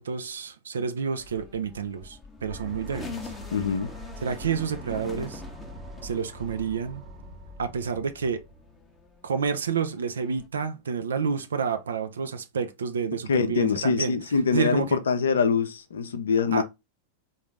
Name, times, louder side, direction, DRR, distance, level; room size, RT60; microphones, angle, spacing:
voice 1, 0.0-3.3 4.2-5.4 6.0-7.0 7.6-8.4 9.2-14.2 14.5-15.0 16.5-16.6, right 6 dB, 70° right, 0.5 m, -29 dB
sound 1, 1.2-8.1 8.5-10.5, left 4 dB, 15° left, 0.7 m, -44 dB
sound 2, 2.5-9.1, equal, 40° right, 0.9 m, -43 dB
voice 2, 3.5-3.9 13.3-16.6, left 5 dB, 65° left, 0.6 m, -24 dB
3.8 x 2.6 x 3.2 m
figure-of-eight pair, 90°, 0 cm